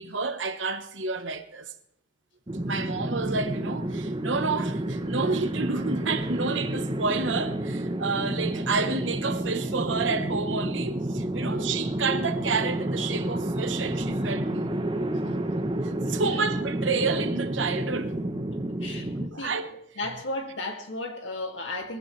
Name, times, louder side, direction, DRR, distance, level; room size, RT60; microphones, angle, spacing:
voice 1, 0.0-1.7 2.6-14.9 15.8-18.2 18.8-19.0 19.3-19.7, right 4 dB, 80° right, 1.1 m, -30 dB
sound 1, 2.5-19.3, right 1 dB, 25° right, 0.9 m, -30 dB
voice 2, 11.4-11.7 14.1-14.2 15.2-15.4 18.8-19.6 20.0-22.0, left 2 dB, 80° left, 2.4 m, -35 dB
21.5 x 15.0 x 3.3 m
head